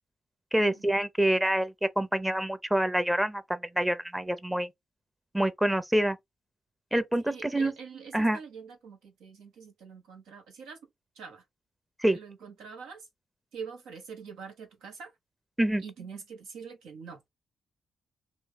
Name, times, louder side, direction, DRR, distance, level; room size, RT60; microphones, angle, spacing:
voice 1, 0.5-4.7 5.3-6.2 6.9-7.7 8.1-8.4 12.0-12.2 15.6-15.8, right 1 dB, 10° right, 0.7 m, -26 dB
voice 2, 7.2-10.8 11.1-11.4 12.1-13.1 13.5-15.1 15.8-17.3, right 6 dB, 90° right, 1.0 m, -45 dB
3.1 x 2.3 x 3.5 m
supercardioid pair, 55°, 0 cm